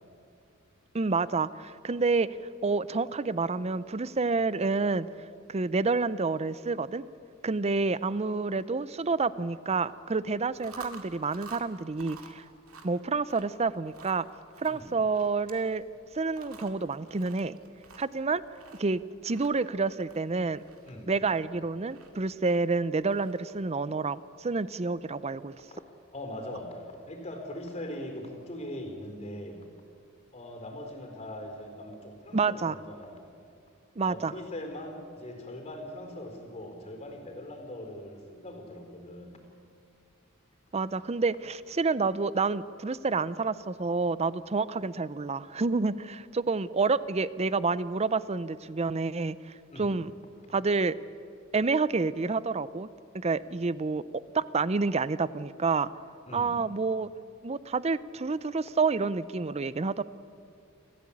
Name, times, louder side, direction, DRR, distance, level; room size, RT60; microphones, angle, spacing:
voice 1, 0.9-2.3 2.6-5.1 5.5-7.0 7.4-12.4 12.8-14.2 14.6-15.8 16.1-17.6 18.0-18.4 18.8-20.6 21.1-25.5 32.3-32.8 34.0-34.3 40.7-50.1 50.5-51.0 51.5-52.9 53.1-54.0 54.3-55.9 56.3-57.1 57.4-60.0, right 4 dB, 30° right, 17 dB, 0.6 m, -28 dB
Chewing mastication, 10.4-23.6, right 4 dB, 80° right, 2.2 m, -52 dB
voice 2, 26.1-29.7 30.3-33.2 34.0-39.4 49.7-50.0 56.3-56.5, left 1 dB, 30° left, 4 dB, 4.3 m, -41 dB
28.0 x 14.5 x 8.6 m, 2.4 s
head